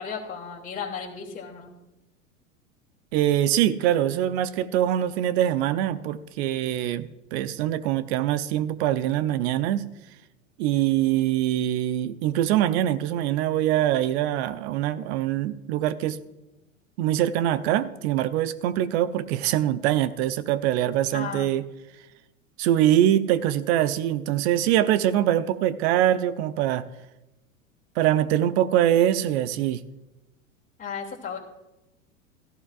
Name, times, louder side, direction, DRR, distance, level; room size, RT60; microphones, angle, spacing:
voice 1, 0.0-1.7 21.1-21.5 30.8-31.4, left 6 dB, 20° left, -2 dB, 2.6 m, -34 dB
voice 2, 3.1-9.9 10.6-16.2 17.0-21.7 22.6-26.8 28.0-29.8, right 12 dB, 50° right, 14 dB, 0.8 m, -23 dB
16.5 x 14.0 x 2.5 m, 0.97 s
hypercardioid pair, 90°, 40 cm